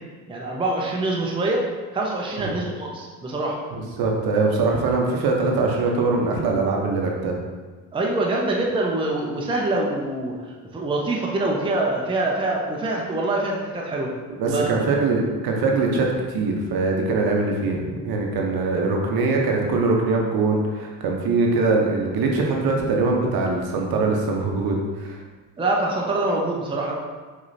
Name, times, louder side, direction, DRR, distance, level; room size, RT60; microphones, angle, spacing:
voice 1, 0.3-1.7 1.9-3.6 7.9-14.1 14.4-14.9 25.6-26.9, right 2 dB, 10° right, -2 dB, 0.7 m, -25 dB
voice 2, 3.7-7.4 14.4-25.2, right 3 dB, 50° right, 0 dB, 0.9 m, -22 dB
4.9 x 3.0 x 2.6 m, 1.4 s
hypercardioid pair, 60°, 47 cm